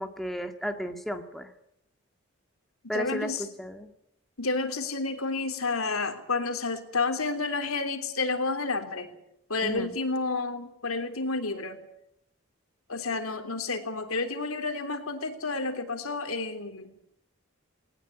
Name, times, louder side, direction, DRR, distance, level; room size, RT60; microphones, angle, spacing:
voice 1, 0.0-1.5 2.9-3.9 9.6-10.0, equal, ahead, 5 dB, 1.8 m, -34 dB
voice 2, 2.9-3.4 4.4-9.1 9.5-11.8 12.9-16.9, left 3 dB, 90° left, 7 dB, 3.4 m, -30 dB
19.5 x 19.0 x 10.0 m, 0.76 s
head